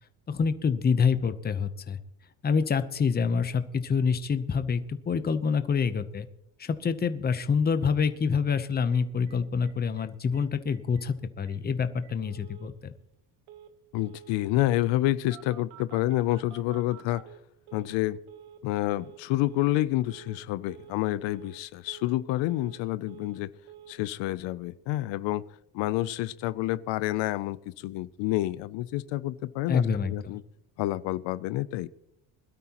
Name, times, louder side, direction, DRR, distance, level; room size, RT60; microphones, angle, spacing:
voice 1, 0.3-2.0 2.4-6.3 6.6-12.9 29.7-30.4, left 6 dB, 20° left, 0.8 m, -27 dB
Telephone, 8.5-8.6 8.9-9.0 9.3-9.4 9.6-10.1 10.3-10.4 10.7-11.1 11.5-11.6 12.0-12.7 13.5-13.7 14.0-14.7 15.3-18.0 18.3-18.6 18.9-19.2 19.5-19.8 20.1-20.4 20.7-21.0 21.3-21.6 21.9-22.8 23.1-23.4 23.7-23.9, right 10 dB, 90° right, 1.3 m, -50 dB
voice 2, 13.9-17.2 17.7-18.2 18.6-23.5 23.9-25.4 25.7-30.4 30.8-31.9, left 16 dB, 70° left, 0.6 m, -28 dB
21.0 x 12.5 x 3.0 m
cardioid pair, 125°, 45 cm